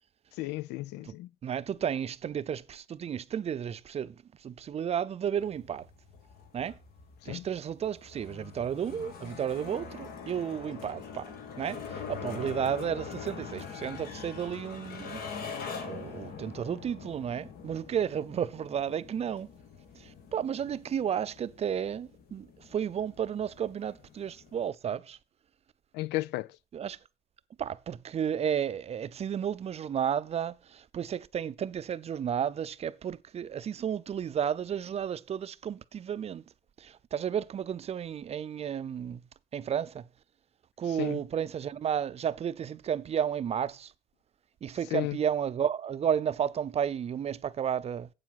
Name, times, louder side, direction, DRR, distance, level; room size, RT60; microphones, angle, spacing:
voice 1, 0.4-1.3 7.2-7.5 25.9-26.5 41.0-41.2 44.9-45.2, left 18 dB, 85° left, 0.5 m, -33 dB
voice 2, 1.4-5.9 6.5-6.8 7.2-15.2 15.8-19.5 19.9-25.2 26.7-27.0 27.6-36.4 36.8-39.2 39.5-40.1 40.8-43.9 44.6-48.1, right 8 dB, 40° right, 0.5 m, -32 dB
sound 1, 5.4-24.7, left 6 dB, 65° left, 2.1 m, -44 dB
8.2 x 7.4 x 5.8 m
cardioid pair, 110°, 17 cm